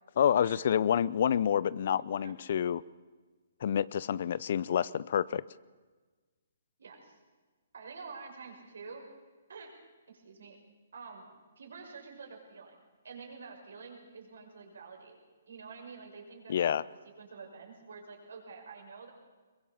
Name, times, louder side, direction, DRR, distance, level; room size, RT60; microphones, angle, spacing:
voice 1, 0.2-2.8 3.6-5.4 16.5-16.8, left 9 dB, 55° left, 21 dB, 0.6 m, -28 dB
voice 2, 1.9-2.3 6.8-7.2 7.7-9.0 9.5-9.7 10.1-10.6 10.9-11.3 11.6-15.2 15.5-16.7 17.2-19.1, right 5 dB, 70° right, 2 dB, 6.1 m, -48 dB
22.5 x 22.0 x 7.3 m, 1.4 s
hypercardioid pair, 135°, 0 cm